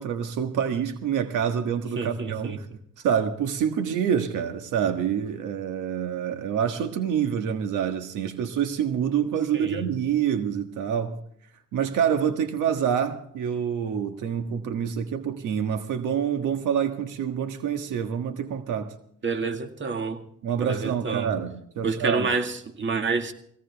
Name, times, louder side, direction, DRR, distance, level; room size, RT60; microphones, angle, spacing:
voice 1, 0.0-2.7 3.0-11.2 11.7-18.9 20.4-22.3, right 8 dB, 85° right, 1.6 m, -27 dB
voice 2, 2.0-2.6 9.5-9.9 19.2-20.2 20.6-21.3 21.8-23.3, right 4 dB, 40° right, 2.1 m, -28 dB
20.5 x 16.5 x 3.5 m
cardioid pair, 90°, 30 cm